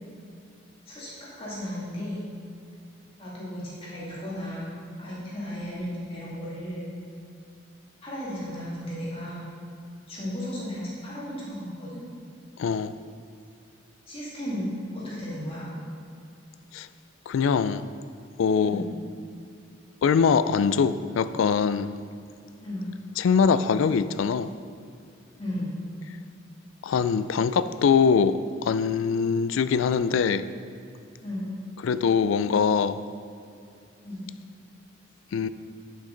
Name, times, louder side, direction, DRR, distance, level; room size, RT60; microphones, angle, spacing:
voice 1, 0.9-2.2 3.2-4.7 5.0-6.8 8.0-9.5 10.1-12.0 14.1-15.7 18.6-18.9 22.6-22.9 25.4-25.8 31.2-31.5 34.0-34.2, equal, 30° left, -8 dB, 2.2 m, -34 dB
voice 2, 12.6-12.9 16.7-16.9 17.3-17.9 18.4-18.8 20.0-21.9 23.2-24.5 26.8-30.4 31.8-33.0 35.3-35.5, left 6 dB, 80° left, 14 dB, 0.3 m, -23 dB
9.9 x 6.5 x 3.9 m, 2.5 s
head